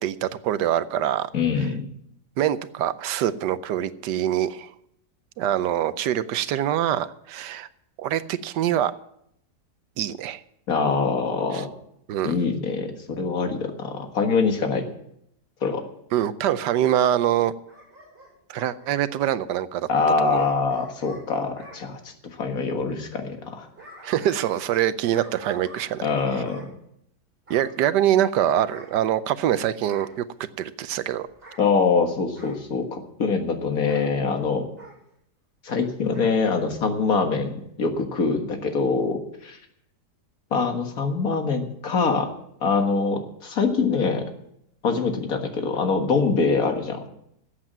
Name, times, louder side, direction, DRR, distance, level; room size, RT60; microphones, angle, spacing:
voice 1, 0.0-1.3 2.4-4.7 5.4-7.7 8.0-8.9 10.0-10.4 11.5-11.6 12.1-12.3 16.1-17.5 18.5-19.9 20.2-20.4 24.0-26.1 27.5-30.2 30.6-31.3, right 11 dB, 90° right, 14 dB, 1.3 m, -24 dB
voice 2, 1.3-1.9 10.7-11.7 12.2-14.8 15.6-15.8 19.9-22.0 22.4-23.7 26.0-26.7 31.6-34.7 35.6-39.6 40.5-42.3 42.6-44.3 44.8-47.1, left 4 dB, 60° left, 5 dB, 2.0 m, -24 dB
Bark / Growling, 17.7-19.3 20.4-21.8 23.4-24.8 25.1-26.7 27.5-27.8 28.7-29.5 29.9-30.2 31.3-31.6 32.4-32.6 33.9-34.1 34.8-35.0 36.1-36.7 37.0-37.1, right 1 dB, 35° right, 7.4 m, -46 dB
13.5 x 8.3 x 7.4 m, 0.74 s
omnidirectional pair, 1.8 m